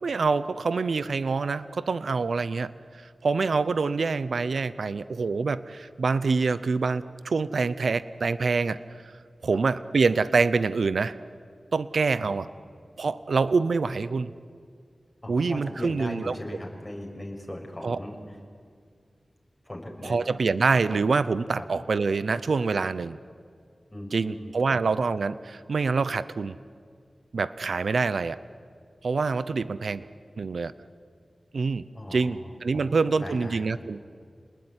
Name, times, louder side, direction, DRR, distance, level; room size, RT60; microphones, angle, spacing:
voice 1, 0.0-9.1 9.4-11.2 11.7-12.5 13.0-14.3 15.3-16.4 17.8-18.0 20.0-23.2 24.1-26.6 27.3-28.4 29.0-30.1 30.4-30.7 31.5-31.8 32.1-34.0, right 4 dB, 85° right, 15 dB, 0.7 m, -26 dB
voice 2, 15.2-18.2 19.6-20.2 20.9-21.0 23.9-24.8 31.9-32.5 32.7-32.9 33.2-33.6, left 1 dB, 20° left, 1 dB, 6.4 m, -38 dB
29.5 x 20.0 x 9.7 m, 2.1 s
wide cardioid pair, 55°, 0 cm